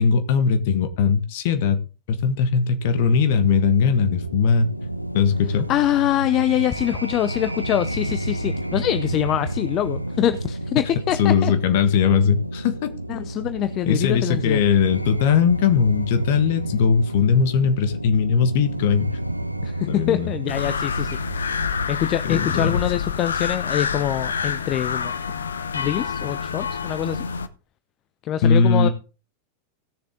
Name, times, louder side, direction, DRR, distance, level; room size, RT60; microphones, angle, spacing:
voice 1, 0.0-1.8 2.1-4.7 5.1-5.7 11.2-12.9 13.8-19.1 19.9-20.3 22.2-22.8 28.4-28.9, left 6 dB, 50° left, 1.6 m, -19 dB
sound 1, 2.8-21.9, right 1 dB, 90° right, 0.6 m, -30 dB
voice 2, 5.7-11.5 13.1-14.6 19.6-21.2 21.9-25.1 25.7-27.2 28.2-28.9, left 12 dB, 35° left, 0.6 m, -24 dB
sound 2, 20.5-27.5, left 6 dB, 70° left, 0.8 m, -27 dB
17.0 x 6.9 x 3.7 m
figure-of-eight pair, 90°, 0 cm